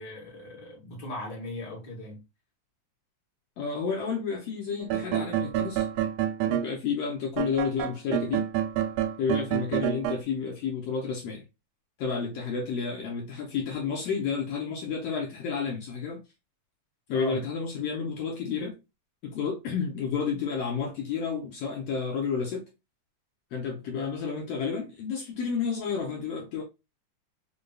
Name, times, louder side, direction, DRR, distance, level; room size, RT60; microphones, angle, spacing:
voice 1, 0.0-2.2 17.1-17.4, left 1 dB, 45° left, 1.6 m, -38 dB
voice 2, 3.6-5.8 6.4-8.5 9.2-11.4 12.0-16.2 17.1-18.7 19.2-22.6 23.5-26.6, left 5 dB, 70° left, 1.5 m, -31 dB
sound 1, 4.8-6.7 7.4-10.2, right 11 dB, 90° right, 2.1 m, -28 dB
5.1 x 2.2 x 2.2 m
omnidirectional pair, 3.5 m